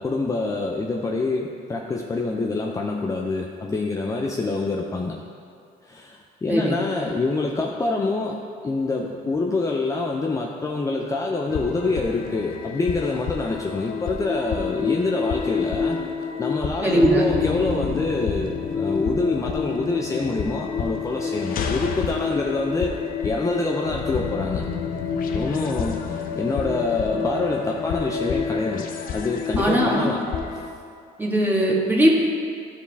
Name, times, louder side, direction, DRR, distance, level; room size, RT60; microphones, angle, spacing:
voice 1, 0.0-5.1 5.8-16.0 16.4-23.0 23.2-24.6 25.3-28.9 29.1-30.2, left 3 dB, 20° left, 0 dB, 0.5 m, -26 dB
sound 1, 11.5-30.7, left 6 dB, 60° left, 0.7 m, -28 dB
voice 2, 16.8-17.3 29.6-30.1 31.2-32.1, right 1 dB, 10° right, -3 dB, 1.5 m, -19 dB
13.0 x 4.7 x 3.4 m, 2.3 s
cardioid pair, 110°, 17 cm